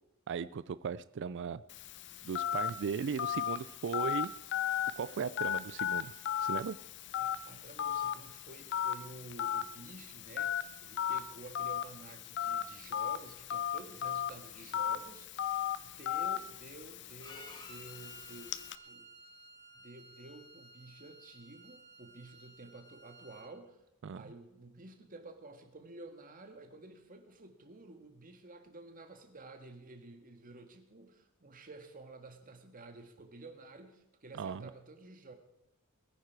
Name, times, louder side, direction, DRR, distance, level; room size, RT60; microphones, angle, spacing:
voice 1, 0.3-1.6 2.2-4.3 5.0-6.1 6.4-6.8 24.0-24.2 34.3-34.7, right 6 dB, 55° right, 15 dB, 0.4 m, -37 dB
Telephone, 1.7-18.7, left 9 dB, 55° left, 0.6 m, -37 dB
voice 2, 7.1-18.5 18.8-19.0 19.7-23.8 24.1-35.3, right 2 dB, 40° right, 5 dB, 1.8 m, -52 dB
Bowed string instrument, 17.2-23.5, equal, 20° left, 2.0 m, -54 dB
21.0 x 9.9 x 4.7 m, 0.88 s
head